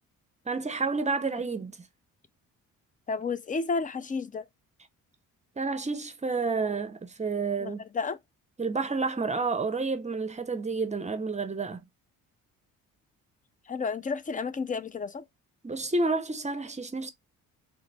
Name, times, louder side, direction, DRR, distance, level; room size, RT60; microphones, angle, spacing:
voice 1, 0.5-1.8 5.6-7.8 8.6-11.8 15.6-17.1, right 3 dB, 20° right, 0.7 m, -30 dB
voice 2, 3.1-4.4 7.6-8.2 13.7-15.2, left 4 dB, 20° left, 0.5 m, -31 dB
3.9 x 2.1 x 3.2 m
supercardioid pair, 70°, 36 cm